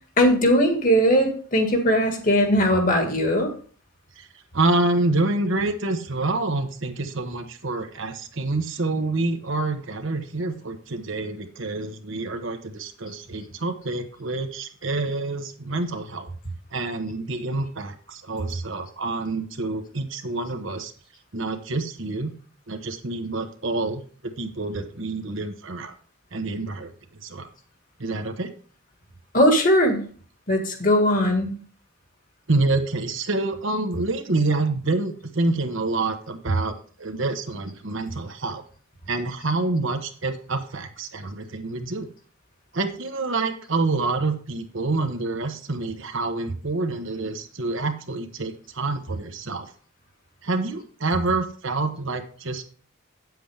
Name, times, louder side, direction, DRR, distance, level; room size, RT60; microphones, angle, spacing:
voice 1, 0.2-3.5 29.3-30.1 30.5-31.6, equal, 40° left, 4 dB, 1.8 m, -19 dB
voice 2, 4.5-16.3 16.7-20.9 21.3-22.3 22.7-25.9 26.3-26.9 27.2-27.5 28.0-28.5 32.5-38.6 39.1-42.1 42.7-49.7 50.4-52.6, right 2 dB, 65° right, 6 dB, 1.1 m, -27 dB
9.1 x 7.7 x 3.4 m, 0.43 s
head